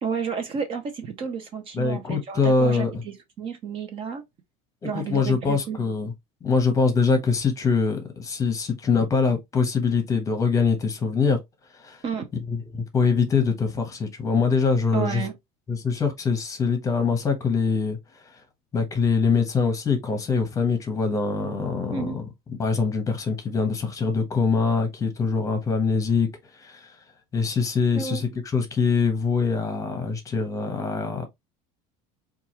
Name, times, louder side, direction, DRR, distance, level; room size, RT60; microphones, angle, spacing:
voice 1, 0.0-4.2 4.8-5.8 12.0-12.3 14.9-15.3 21.9-22.2 28.0-28.2, right 6 dB, 35° right, 0.7 m, -31 dB
voice 2, 1.7-3.0 4.8-6.1 6.4-11.4 11.7-12.0 12.5-15.2 15.7-18.0 18.2-18.4 18.7-26.3 26.5-27.0 27.3-31.3, left 4 dB, 20° left, 0.9 m, -24 dB
4.4 x 2.4 x 2.9 m
cardioid pair, 160°, 16 cm